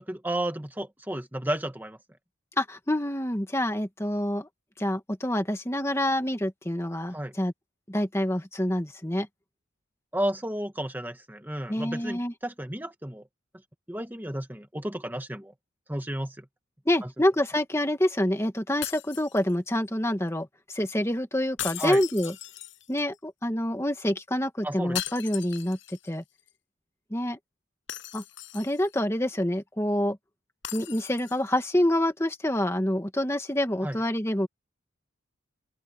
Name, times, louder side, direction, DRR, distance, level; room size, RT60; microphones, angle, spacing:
voice 1, 0.0-2.0 7.1-7.3 10.1-13.2 13.9-15.5 15.9-16.5 17.0-17.1 21.8-22.0 24.6-25.0 33.8-34.0, right 1 dB, 10° right, 1.6 m, -32 dB
voice 2, 2.6-4.5 4.8-7.5 7.9-9.3 11.7-12.3 16.9-22.3 22.9-25.8 26.1-26.2 27.1-27.4 28.1-28.2 28.5-30.2 30.7-34.5, left 1 dB, 15° left, 1.8 m, -27 dB
sound 1, 18.8-19.9 21.6-23.2 25.0-26.2 26.5-26.6 27.9-29.0 30.6-31.6, left 13 dB, 65° left, 5.8 m, -38 dB
open air
head